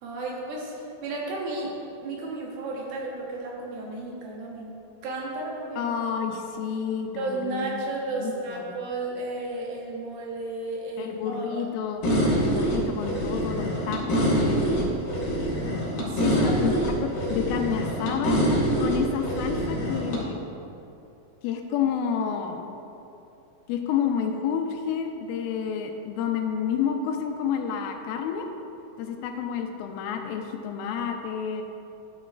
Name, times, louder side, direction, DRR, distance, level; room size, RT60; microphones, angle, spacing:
voice 1, 0.0-1.7 2.0-4.7 5.0-5.9 7.2-11.6 16.1-16.6, right 2 dB, 80° right, -2 dB, 3.0 m, -33 dB
voice 2, 5.8-7.8 8.2-8.6 11.0-12.1 12.4-14.9 16.2-16.7 17.0-18.4 18.8-20.5 21.4-22.7 23.7-28.5 29.0-31.6, left 7 dB, 85° left, 4 dB, 2.3 m, -29 dB
sound 1, 12.0-20.2, equal, 65° left, 1.2 m, -25 dB
12.0 x 5.9 x 2.4 m, 2.8 s
omnidirectional pair, 4.2 m